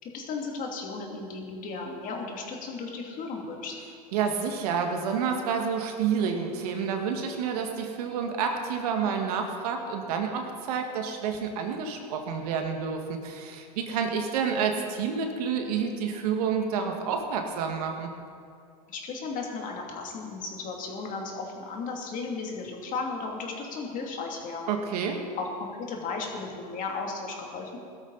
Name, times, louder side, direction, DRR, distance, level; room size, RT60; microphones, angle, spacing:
voice 1, 0.0-3.7 18.9-24.7 25.4-27.8, left 4 dB, 40° left, 0 dB, 2.7 m, -35 dB
voice 2, 4.1-18.1 24.7-25.2, right 6 dB, 70° right, 3 dB, 1.8 m, -29 dB
17.0 x 12.5 x 4.1 m, 2.3 s
hypercardioid pair, 110°, 20 cm